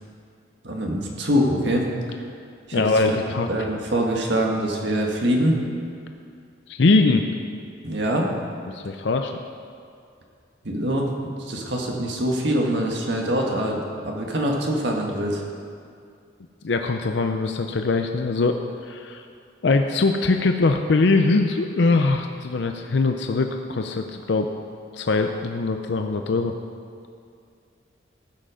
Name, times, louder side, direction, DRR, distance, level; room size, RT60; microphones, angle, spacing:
voice 1, 0.6-1.9 2.7-3.2 3.5-5.6 7.8-8.3 10.6-11.1 11.5-15.4, equal, 70° right, 0 dB, 1.7 m, -24 dB
voice 2, 2.7-3.5 6.7-7.3 8.7-9.3 16.6-18.6 18.8-19.2 19.6-24.5 24.9-26.6, left 3 dB, 70° left, 5 dB, 0.5 m, -22 dB
14.5 x 7.7 x 5.0 m, 2.3 s
head